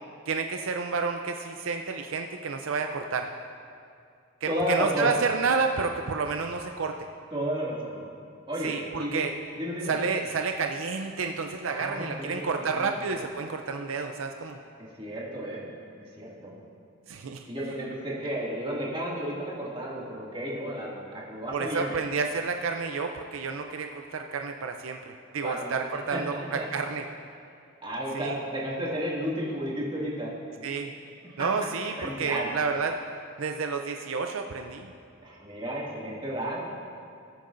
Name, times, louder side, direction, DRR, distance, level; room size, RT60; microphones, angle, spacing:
voice 1, 0.3-3.3 4.4-7.1 8.6-9.3 9.8-14.6 17.1-17.5 21.5-27.0 28.1-28.4 30.6-30.9 31.4-33.0 33.4-34.9, right 4 dB, 75° right, 4 dB, 0.5 m, -30 dB
voice 2, 4.5-5.1 7.3-8.0 8.5-9.2 9.6-10.0 11.7-13.2 15.0-15.7 16.2-16.5 17.5-22.0 25.4-25.7 26.1-26.7 27.8-30.3 31.2-31.5 32.0-32.5 35.2-36.7, equal, 25° right, -6 dB, 2.3 m, -32 dB
20.0 x 8.8 x 2.6 m, 2.4 s
head